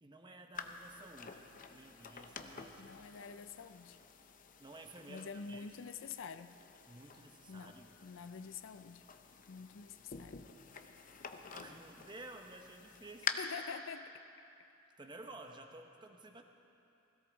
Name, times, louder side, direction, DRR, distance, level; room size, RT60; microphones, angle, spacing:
voice 1, 0.0-2.7 4.6-5.7 6.9-7.9 11.5-13.4 15.0-16.4, right 2 dB, 25° right, 4 dB, 0.9 m, -53 dB
sound 1, 0.5-13.3, left 7 dB, 45° left, 0.7 m, -48 dB
voice 2, 2.8-4.0 5.1-6.6 7.5-9.1 9.5-10.4 13.4-14.2, left 6 dB, 85° left, 11 dB, 0.5 m, -47 dB
17.0 x 16.5 x 3.9 m, 2.8 s
head